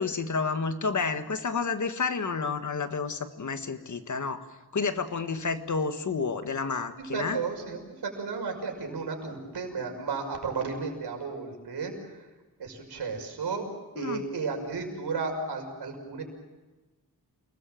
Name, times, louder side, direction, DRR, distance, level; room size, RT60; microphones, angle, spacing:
voice 1, 0.0-4.4 4.7-7.4 14.0-14.2, left 4 dB, 50° left, 8 dB, 1.7 m, -30 dB
voice 2, 7.1-12.3 12.6-13.7 13.9-16.2, right 4 dB, 90° right, 3 dB, 6.0 m, -33 dB
29.0 x 20.0 x 7.7 m, 1.2 s
wide cardioid pair, 165°, 39 cm